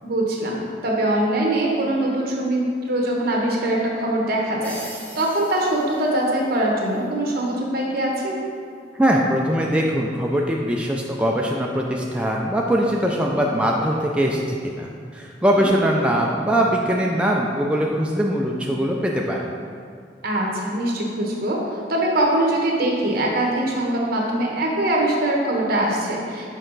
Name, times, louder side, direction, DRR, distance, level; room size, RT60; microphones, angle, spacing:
voice 1, 0.0-8.4 15.6-15.7 20.2-21.6 21.9-26.5, right 1 dB, 55° right, -2 dB, 1.2 m, -22 dB
sound 1, 4.6-6.7, right 1 dB, 10° left, 0.9 m, -41 dB
voice 2, 9.0-19.4, equal, 5° right, -2 dB, 0.3 m, -21 dB
6.5 x 4.8 x 3.9 m, 2.3 s
head